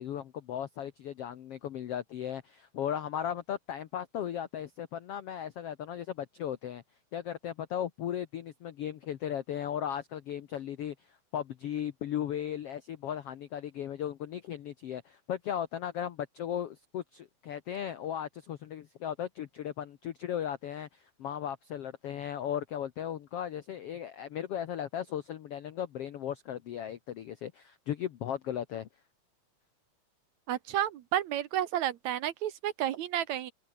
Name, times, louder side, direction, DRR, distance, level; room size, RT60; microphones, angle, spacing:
voice 1, 0.0-6.8 7.1-28.9, left 10 dB, 75° left, 1.4 m, -36 dB
voice 2, 30.5-33.5, right 11 dB, 65° right, 2.0 m, -31 dB
open air
omnidirectional pair, 4.1 m